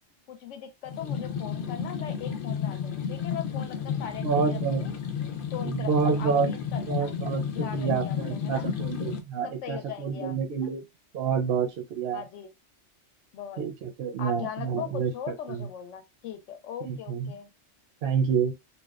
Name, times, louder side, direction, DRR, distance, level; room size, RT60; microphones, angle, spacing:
voice 1, 0.3-4.9 5.5-7.2 7.5-8.7 9.4-10.3 10.6-10.7 12.1-12.5 13.3-13.6 14.2-17.5, left 8 dB, 90° left, 0.9 m, -39 dB
sound 1, 0.8-9.2, left 7 dB, 60° left, 0.6 m, -32 dB
voice 2, 4.2-4.8 5.7-6.5 6.9-10.8 11.1-12.2 13.6-15.1 15.5-15.7 16.8-17.3 18.0-18.5, right 6 dB, 65° right, 0.7 m, -28 dB
2.7 x 2.1 x 2.3 m
omnidirectional pair, 1.2 m